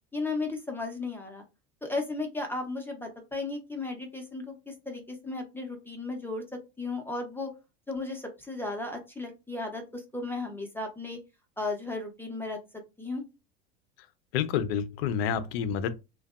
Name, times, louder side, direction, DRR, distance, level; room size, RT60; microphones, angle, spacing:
voice 1, 0.1-1.4 1.8-7.5 7.9-11.2 11.6-12.6 13.0-13.2, left 3 dB, 5° left, 0.6 m, -35 dB
voice 2, 14.3-16.0, left 8 dB, 70° left, 0.5 m, -28 dB
2.5 x 2.2 x 2.3 m
hypercardioid pair, 90°, 32 cm